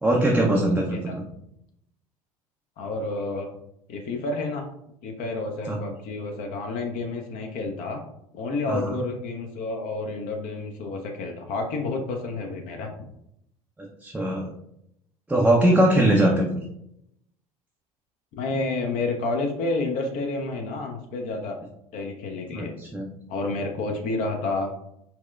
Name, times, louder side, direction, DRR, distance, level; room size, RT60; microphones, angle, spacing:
voice 1, 0.0-1.2 5.7-5.8 8.7-9.0 14.0-14.5 15.3-16.5 22.5-23.1, right 1 dB, 5° right, -2 dB, 0.5 m, -21 dB
voice 2, 2.8-3.5 3.9-4.6 5.0-8.0 8.3-12.9 16.0-16.2 18.4-21.6 21.9-22.7 23.3-24.7, left 3 dB, 45° left, 3 dB, 0.5 m, -30 dB
4.1 x 2.1 x 2.3 m, 0.77 s
figure-of-eight pair, 70°, 19 cm